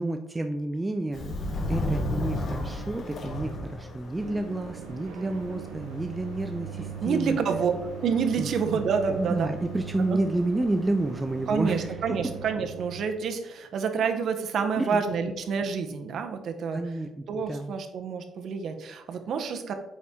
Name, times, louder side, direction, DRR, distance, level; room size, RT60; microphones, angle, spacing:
voice 1, 0.0-1.4 1.7-7.4 8.4-8.5 9.1-12.2 14.8-15.0 16.7-17.7, right 2 dB, 15° right, 6 dB, 0.4 m, -30 dB
Subway metro underground, 1.1-11.8, left 1 dB, 50° left, 1.4 m, -36 dB
sound 1, 4.2-13.1, right 7 dB, 90° right, 0.4 m, -40 dB
voice 2, 7.0-7.7 8.0-9.5 10.1-10.2 11.5-16.8 17.3-19.7, right 6 dB, 60° right, 7 dB, 0.8 m, -28 dB
8.5 x 4.2 x 3.6 m, 0.95 s
cardioid pair, 110°, 0 cm